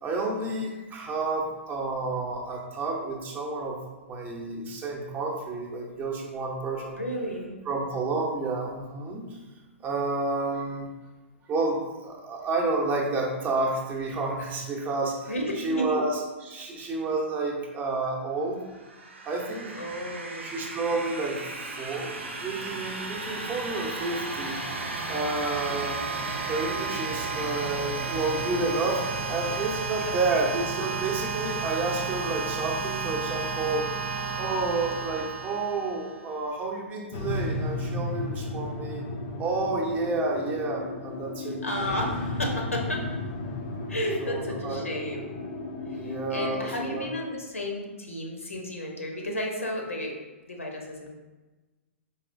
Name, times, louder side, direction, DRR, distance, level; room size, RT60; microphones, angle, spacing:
voice 1, 0.0-3.8 4.1-7.0 7.7-9.4 9.8-10.9 11.5-18.6 19.3-19.8 20.4-21.4 21.8-24.6 25.0-26.1 26.4-33.9 34.4-39.0 39.4-41.6 44.2-44.9 45.9-47.0, right 3 dB, 25° right, -1 dB, 0.7 m, -30 dB
voice 2, 6.9-7.6 15.3-16.0 19.7-20.5 30.0-30.5 41.6-43.0 43.9-45.4 45.9-50.2 50.5-51.2, equal, 85° left, 1 dB, 0.8 m, -33 dB
sound 1, 18.7-36.3, right 4 dB, 65° right, 0.7 m, -33 dB
sound 2, 37.1-47.1, left 2 dB, 40° left, 0.5 m, -34 dB
4.1 x 3.0 x 2.6 m, 1.2 s
figure-of-eight pair, 115°, 7 cm